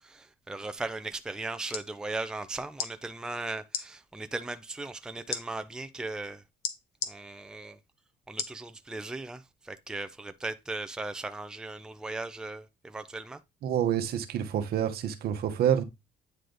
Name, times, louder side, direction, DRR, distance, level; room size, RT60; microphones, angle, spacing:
voice 1, 0.0-6.4 7.1-7.8 8.3-13.4, right 2 dB, 5° right, 0.5 m, -37 dB
sound 1, 1.7-1.9 2.7-2.9 3.7-3.9 5.3-5.4 6.6-7.1 8.4-8.6 9.2-9.3, left 7 dB, 70° left, 1.0 m, -33 dB
voice 2, 13.6-15.8, right 10 dB, 65° right, 1.0 m, -27 dB
9.2 x 3.2 x 3.9 m
cardioid pair, 110°, 17 cm